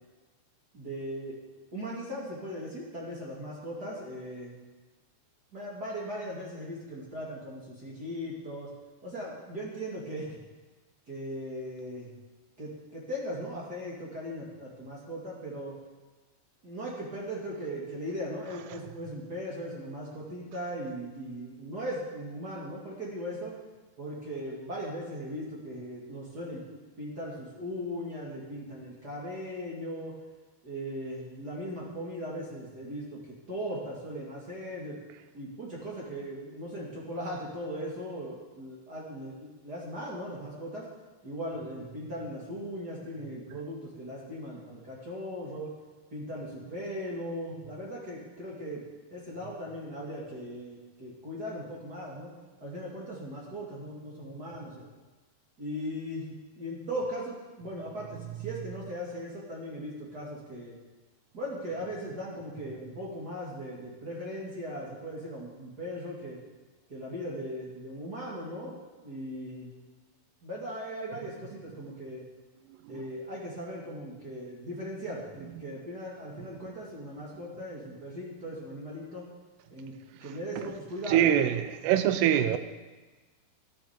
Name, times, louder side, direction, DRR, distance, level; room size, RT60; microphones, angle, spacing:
voice 1, 0.7-1.4 1.7-4.6 5.5-8.7 9.0-10.4 11.1-12.1 12.6-15.7 16.6-23.5 24.0-30.1 30.6-34.9 35.3-40.9 41.2-45.7 46.1-48.8 49.1-52.3 52.6-54.9 55.6-58.1 58.4-60.7 61.3-66.4 66.9-68.8 69.0-69.7 70.4-72.2 72.9-79.3 79.7-79.9 80.2-81.5, equal, 35° right, -4 dB, 1.6 m, -38 dB
voice 2, 81.1-82.6, right 10 dB, 80° right, 10 dB, 2.6 m, -23 dB
13.0 x 12.5 x 4.3 m, 1.2 s
omnidirectional pair, 5.0 m